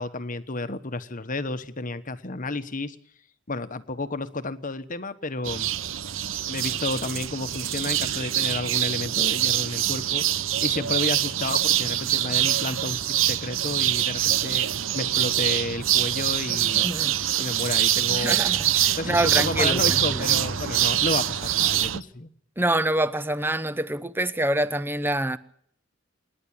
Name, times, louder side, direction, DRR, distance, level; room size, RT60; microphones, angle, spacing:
voice 1, 0.0-3.0 3.5-5.7 6.5-10.2 10.6-14.7 14.9-16.9 17.4-18.5 19.0-22.3, left 2 dB, 40° left, 1.2 m, -31 dB
sound 1, 5.4-22.0, right 12 dB, 70° right, 0.8 m, -24 dB
voice 2, 16.7-17.2 18.1-20.3 22.6-25.4, right 1 dB, 10° right, 0.8 m, -26 dB
27.5 x 11.0 x 8.9 m
head